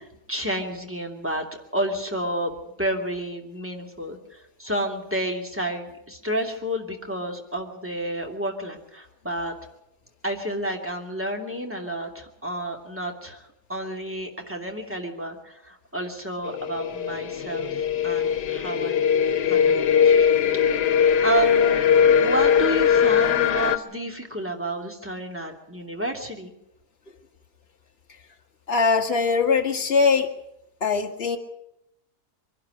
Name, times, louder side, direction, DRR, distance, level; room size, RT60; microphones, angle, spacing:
voice 1, 0.0-1.4 1.7-2.5 2.8-9.5 10.2-19.0 19.4-20.3 20.7-26.5, right 1 dB, 10° right, 2 dB, 2.7 m, -30 dB
sound 1, 16.5-23.8, left 8 dB, 85° left, 1.6 m, -20 dB
voice 2, 28.7-30.3 30.8-31.4, left 5 dB, 40° left, 3 dB, 2.0 m, -21 dB
23.5 x 11.5 x 9.8 m, 0.82 s
omnidirectional pair, 1.7 m